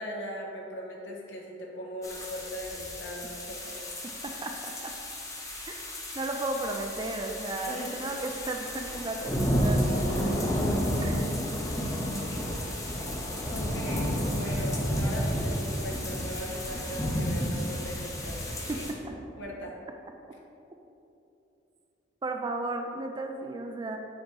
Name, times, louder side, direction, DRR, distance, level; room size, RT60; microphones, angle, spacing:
voice 1, 0.0-3.8 7.6-8.1 10.2-10.3 11.0-11.1 13.5-18.9 19.4-19.7, equal, 80° left, -2 dB, 1.2 m, -39 dB
sound 1, 2.0-18.9, equal, 20° left, 0.9 m, -31 dB
voice 2, 4.2-4.9 5.7-5.8 6.1-9.9 11.0-11.3 18.7-18.8 22.2-24.0, right 2 dB, 25° right, 4 dB, 0.3 m, -34 dB
7.8 x 3.0 x 5.2 m, 2.8 s
head